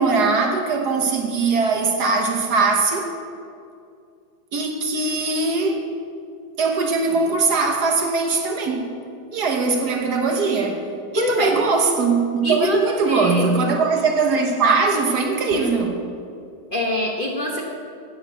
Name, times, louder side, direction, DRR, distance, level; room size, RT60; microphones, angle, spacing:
voice 1, 0.0-3.1 4.5-5.8 6.6-8.9 9.3-10.8 11.1-16.0, right 4 dB, 60° right, 1.5 m, -20 dB
voice 2, 11.2-11.5 12.4-13.5 15.5-15.7 16.7-17.6, left 1 dB, 35° left, 1.0 m, -24 dB
8.8 x 8.7 x 7.4 m
omnidirectional pair, 2.1 m